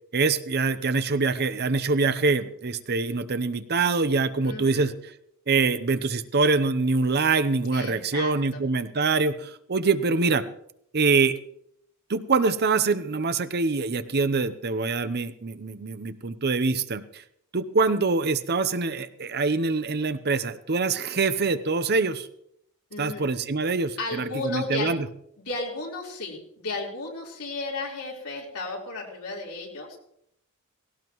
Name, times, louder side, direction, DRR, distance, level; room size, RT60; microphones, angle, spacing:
voice 1, 0.1-4.9 5.5-10.4 10.9-11.3 12.1-17.2 17.5-22.3 23.0-25.1, right 4 dB, 50° right, 12 dB, 0.8 m, -24 dB
voice 2, 4.4-4.9 7.7-8.6 22.9-23.3 24.0-24.9 25.4-30.0, left 3 dB, 85° left, -2 dB, 4.2 m, -34 dB
18.0 x 17.5 x 3.1 m, 0.72 s
head